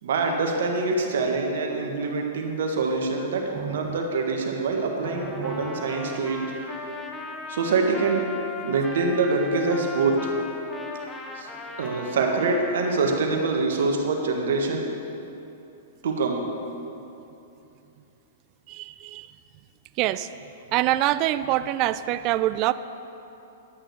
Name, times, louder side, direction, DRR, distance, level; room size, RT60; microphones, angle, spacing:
voice 1, 0.0-6.4 7.5-8.3 8.6-10.3 11.4-11.5 11.8-14.9 16.0-16.4, right 3 dB, 70° right, 2 dB, 1.5 m, -25 dB
voice 2, 3.6-4.0 5.4-5.6 18.7-19.3 20.0-20.3 20.7-22.7, right 14 dB, 40° right, 14 dB, 0.3 m, -25 dB
Trumpet, 5.0-13.4, left 2 dB, 15° left, 0.9 m, -38 dB
11.0 x 6.4 x 6.3 m, 2.8 s
hypercardioid pair, 120°, 0 cm